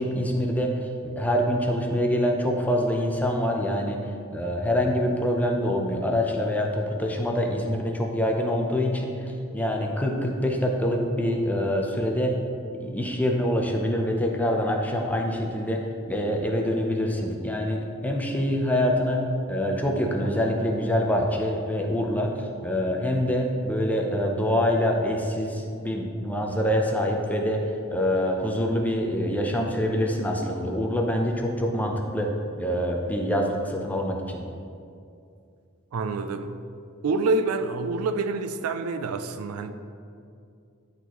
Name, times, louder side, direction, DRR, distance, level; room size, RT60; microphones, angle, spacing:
voice 1, 0.0-4.0 4.3-12.4 12.8-34.4, equal, 5° left, 0.6 m, -25 dB
voice 2, 35.9-36.6 37.0-39.7, right 3 dB, 80° right, 0.4 m, -27 dB
11.0 x 4.0 x 3.0 m
head